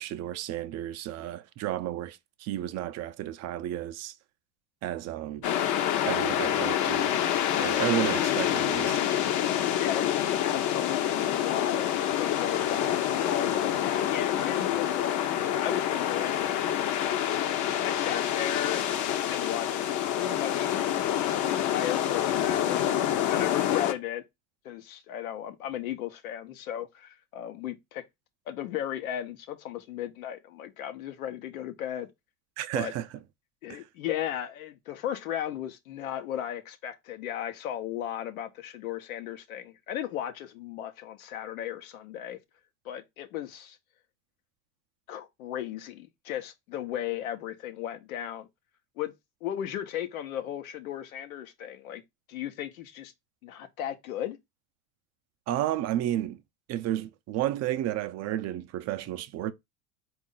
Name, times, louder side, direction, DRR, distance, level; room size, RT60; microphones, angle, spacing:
voice 1, 0.0-4.1 4.8-5.4 6.0-7.1 7.6-9.0 32.6-33.1 33.7-33.8 55.5-56.4 56.7-59.5, right 12 dB, 40° right, 0.5 m, -32 dB
sound 1, 5.4-23.9, left 11 dB, 45° left, 0.7 m, -27 dB
voice 2, 9.8-13.0 13.2-16.8 17.8-18.8 19.3-19.8 20.2-20.7 21.4-23.0 23.3-24.2 24.6-28.0 28.5-32.1 32.7-32.9 33.6-42.4 42.8-43.8 45.1-48.5 49.0-49.1 49.4-52.0 52.3-53.1 53.4-54.4, left 11 dB, 85° left, 0.9 m, -35 dB
4.2 x 2.5 x 3.8 m
supercardioid pair, 100°, 41 cm